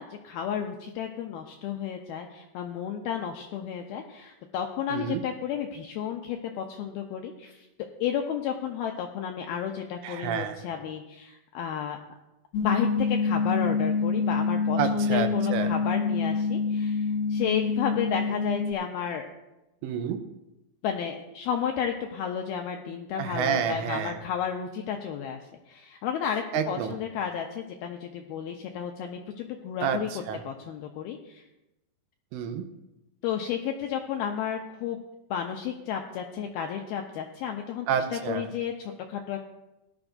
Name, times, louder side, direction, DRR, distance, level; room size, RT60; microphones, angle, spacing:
voice 1, 0.0-7.7 8.0-12.0 12.6-19.3 20.8-25.4 25.7-30.1 30.5-31.4 33.2-35.0 35.3-37.9 38.1-39.4, left 8 dB, 85° left, 3 dB, 2.2 m, -32 dB
voice 2, 4.9-5.2 10.0-10.6 14.8-15.7 19.8-20.2 23.1-24.2 26.5-27.0 29.8-30.4 32.3-32.7 37.9-38.5, right 7 dB, 80° right, 7 dB, 3.0 m, -29 dB
sound 1, 12.5-18.7, left 4 dB, 65° left, 2.4 m, -26 dB
18.0 x 11.5 x 2.6 m, 0.98 s
omnidirectional pair, 5.1 m